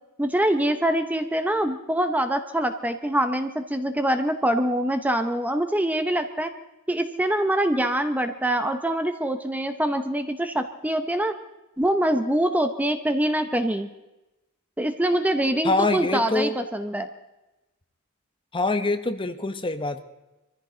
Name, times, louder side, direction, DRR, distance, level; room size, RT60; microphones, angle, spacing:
voice 1, 0.2-6.5 6.9-11.3 11.8-13.9 14.8-17.1, right 1 dB, 5° right, 8 dB, 0.7 m, -24 dB
voice 2, 15.6-16.6 18.5-20.0, left 2 dB, 25° left, 9 dB, 0.9 m, -24 dB
23.0 x 14.5 x 3.9 m, 1.0 s
head